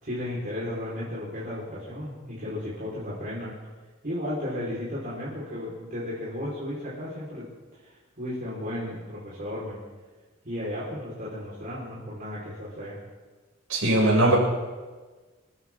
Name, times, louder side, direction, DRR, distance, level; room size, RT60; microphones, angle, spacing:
voice 1, 0.0-3.6 4.0-7.4 7.8-9.8 10.4-13.0, left 1 dB, 45° right, -8 dB, 4.8 m, -34 dB
voice 2, 13.7-14.4, right 1 dB, 85° right, -4 dB, 7.4 m, -20 dB
26.5 x 14.0 x 3.8 m, 1.3 s
head